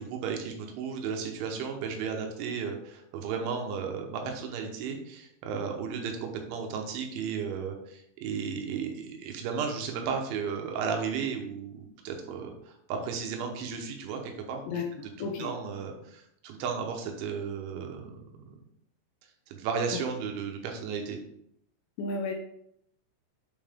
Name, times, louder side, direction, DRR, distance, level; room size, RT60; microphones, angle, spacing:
voice 1, 0.0-14.8 15.2-18.2 18.5-18.6 19.5-21.2, right 6 dB, 80° right, 3 dB, 3.4 m, -34 dB
voice 2, 15.2-15.5 22.0-22.3, left 4 dB, 75° left, 2 dB, 2.7 m, -32 dB
7.9 x 5.5 x 3.6 m, 0.74 s
omnidirectional pair, 5.5 m